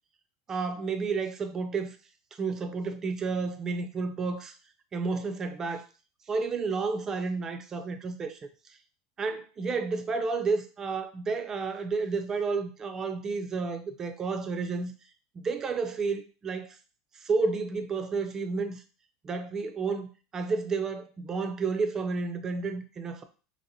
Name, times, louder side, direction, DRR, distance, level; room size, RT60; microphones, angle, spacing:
voice 1, 0.5-2.0 2.4-4.5 4.9-5.8 6.3-8.5 9.2-14.9 15.3-16.8 17.2-18.8 19.2-23.2, right 4 dB, 20° right, 0.4 m, -31 dB
2.9 x 2.8 x 3.9 m
supercardioid pair, 145°, 2 cm